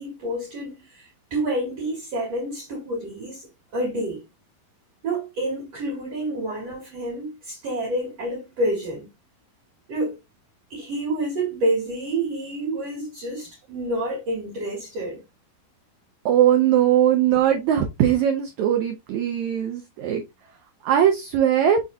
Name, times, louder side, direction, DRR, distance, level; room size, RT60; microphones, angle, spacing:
voice 1, 0.0-4.2 5.0-9.1 9.9-10.2 10.7-15.2, right 1 dB, 50° right, 3.1 m, -28 dB
voice 2, 16.2-20.2 20.8-21.8, right 10 dB, 85° right, 1.6 m, -20 dB
5.4 x 4.1 x 2.3 m
omnidirectional pair, 4.2 m